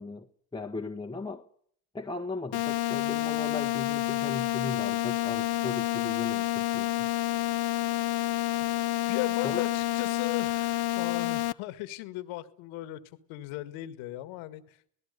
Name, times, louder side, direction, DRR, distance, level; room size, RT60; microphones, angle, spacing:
voice 1, 0.0-1.5 1.9-7.1 8.4-8.7 9.4-9.7, left 3 dB, 10° left, 1.4 m, -38 dB
sound 1, 2.5-11.5, left 16 dB, 50° left, 0.9 m, -29 dB
voice 2, 9.1-13.0 13.3-14.9, left 15 dB, 75° left, 2.0 m, -37 dB
28.5 x 18.0 x 6.8 m
supercardioid pair, 75°, 49 cm